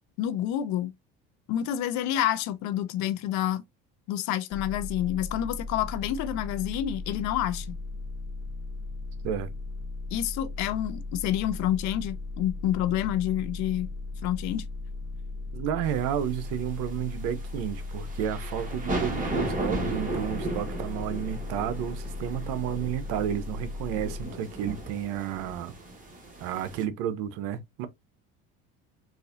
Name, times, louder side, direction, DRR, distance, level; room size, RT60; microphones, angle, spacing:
voice 1, 0.2-0.9 1.5-3.6 4.1-7.8 10.1-13.9 14.2-14.7, left 11 dB, 60° left, 0.6 m, -28 dB
sound 1, 4.5-24.2, left 3 dB, 10° left, 0.8 m, -37 dB
voice 2, 15.5-25.7 26.4-27.9, right 10 dB, 70° right, 0.7 m, -31 dB
sound 2, 15.9-26.8, right 2 dB, 25° right, 1.4 m, -36 dB
4.0 x 2.5 x 2.5 m
supercardioid pair, 95°, 32 cm